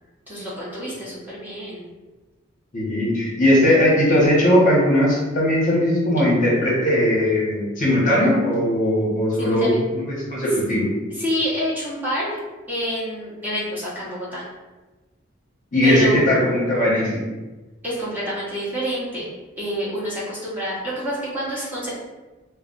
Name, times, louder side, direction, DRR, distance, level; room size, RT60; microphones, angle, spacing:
voice 1, 0.3-1.8 9.4-9.8 11.1-12.4 12.7-14.4 15.8-16.3 17.8-19.3 19.6-21.9, equal, 10° right, -9 dB, 0.7 m, -27 dB
voice 2, 2.7-10.9 15.7-17.2, left 1 dB, 40° left, -5 dB, 0.8 m, -19 dB
2.3 x 2.2 x 3.7 m, 1.2 s
head